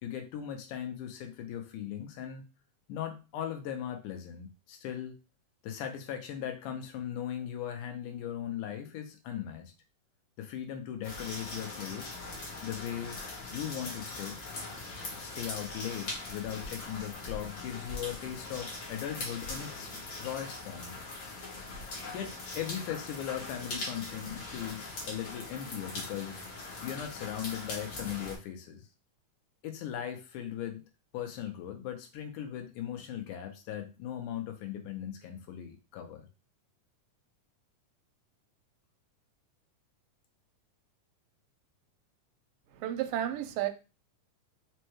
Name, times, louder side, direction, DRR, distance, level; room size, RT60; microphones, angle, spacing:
voice 1, 0.0-2.5 2.9-5.2 5.6-9.7 10.4-12.2 12.6-13.2 13.5-14.4 15.1-21.0 21.9-26.4 26.8-28.9 29.6-30.8 31.1-36.3, left 10 dB, 80° left, 2.1 m, -38 dB
sound 1, 11.0-28.4, left 2 dB, 55° left, 1.3 m, -41 dB
voice 2, 42.7-43.7, right 12 dB, 85° right, 2.1 m, -32 dB
5.2 x 2.2 x 3.0 m
omnidirectional pair, 3.7 m